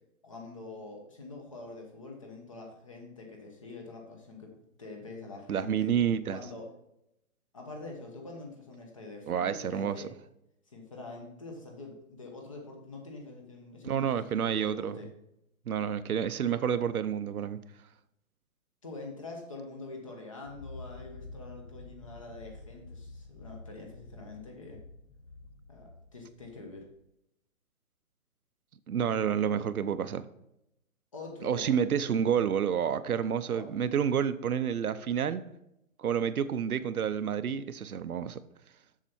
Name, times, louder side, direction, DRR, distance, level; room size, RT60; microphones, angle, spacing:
voice 1, 0.2-4.5 4.8-5.9 6.3-6.7 7.5-10.1 10.7-15.1 18.8-24.8 25.7-26.9 31.1-31.8 33.4-33.7, left 3 dB, 25° left, 2 dB, 1.0 m, -45 dB
voice 2, 5.5-6.4 9.3-10.0 13.8-15.0 15.7-17.6 28.9-30.3 31.4-35.4 36.0-38.4, right 8 dB, 85° right, 13 dB, 0.8 m, -29 dB
sound 1, 20.5-27.0, left 3 dB, 45° left, 0.7 m, -49 dB
7.2 x 6.8 x 4.4 m, 0.82 s
hypercardioid pair, 175°, 42 cm